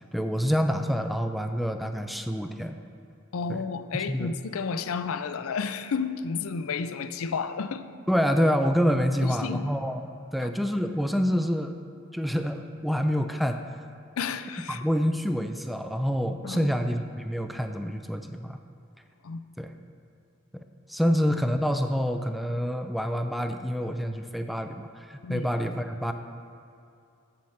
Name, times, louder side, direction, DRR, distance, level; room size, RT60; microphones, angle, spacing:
voice 1, 0.1-2.8 3.5-3.6 3.9-4.3 8.1-10.1 10.3-11.8 12.1-13.6 14.7-18.6 19.6-19.7 20.5-26.1, equal, ahead, 7 dB, 0.3 m, -27 dB
voice 2, 3.3-7.8 9.2-9.7 10.4-10.5 14.2-14.8 16.4-16.7 19.2-19.4 25.2-25.5, left 5 dB, 80° left, 11 dB, 0.5 m, -31 dB
7.7 x 7.4 x 5.6 m, 2.6 s
head